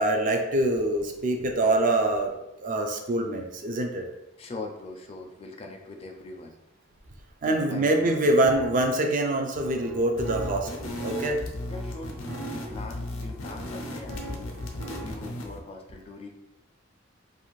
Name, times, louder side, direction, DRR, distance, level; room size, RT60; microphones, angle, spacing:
voice 1, 0.0-2.3 2.6-4.1 7.4-11.4, right 1 dB, 45° right, 3 dB, 0.4 m, -25 dB
voice 2, 4.4-6.5 7.4-8.1 11.6-14.6 15.0-16.3, left 3 dB, 30° left, 2 dB, 0.4 m, -41 dB
sound 1, 7.6-15.3, right 1 dB, 80° right, 1.1 m, -43 dB
sound 2, 10.2-15.6, left 1 dB, 90° left, 0.5 m, -36 dB
2.5 x 2.4 x 3.0 m, 0.92 s
head